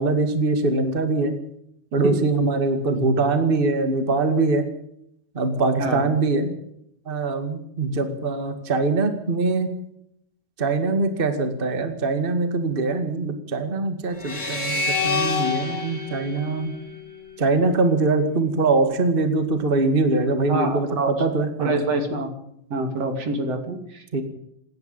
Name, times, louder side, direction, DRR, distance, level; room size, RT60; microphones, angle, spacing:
voice 1, 0.0-1.3 1.9-4.6 5.3-6.5 7.0-9.7 10.6-16.8 17.4-21.8 24.1-24.2, right 3 dB, 70° right, 7 dB, 0.5 m, -22 dB
voice 2, 5.8-6.2 20.5-21.1 21.6-22.3 22.7-24.0, right 2 dB, 40° right, 6 dB, 3.3 m, -26 dB
sound 1, 14.2-17.5, left 4 dB, 25° left, 2.0 m, -28 dB
27.5 x 11.0 x 8.9 m, 0.75 s
omnidirectional pair, 4.9 m